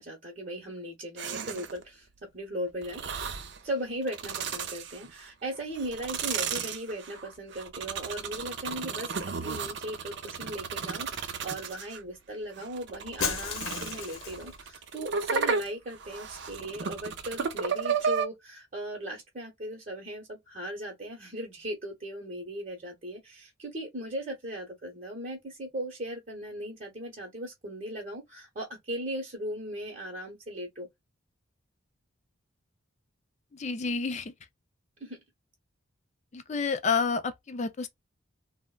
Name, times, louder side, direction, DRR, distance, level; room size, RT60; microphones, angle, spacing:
voice 1, 0.0-2.1 2.3-3.0 3.6-30.9 35.0-35.2, right 1 dB, 35° right, 0.9 m, -38 dB
sound 1, 1.2-1.8 2.8-3.6 4.0-5.3 5.7-12.0 12.6-18.3, right 5 dB, 55° right, 0.5 m, -34 dB
Shatter, 13.2-14.5, left 5 dB, 80° left, 0.8 m, -33 dB
voice 2, 33.5-34.3 36.3-37.9, left 4 dB, 35° left, 0.4 m, -29 dB
3.3 x 2.1 x 2.2 m
head